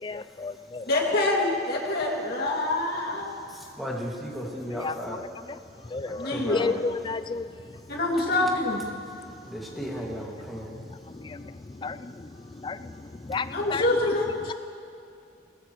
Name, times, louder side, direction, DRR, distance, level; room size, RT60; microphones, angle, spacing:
voice 1, 0.0-0.9 4.7-5.2 5.5-5.6 5.9-7.5 9.3-9.4 10.7-13.9, left 4 dB, 25° left, 13 dB, 0.4 m, -33 dB
voice 2, 0.9-3.3 6.2-6.8 7.9-8.8 13.5-14.4, left 2 dB, 60° left, -4 dB, 2.4 m, -26 dB
voice 3, 3.5-5.2 6.0-6.7 9.5-10.7, equal, ahead, -3 dB, 2.1 m, -35 dB
21.0 x 18.5 x 3.1 m, 2.5 s
head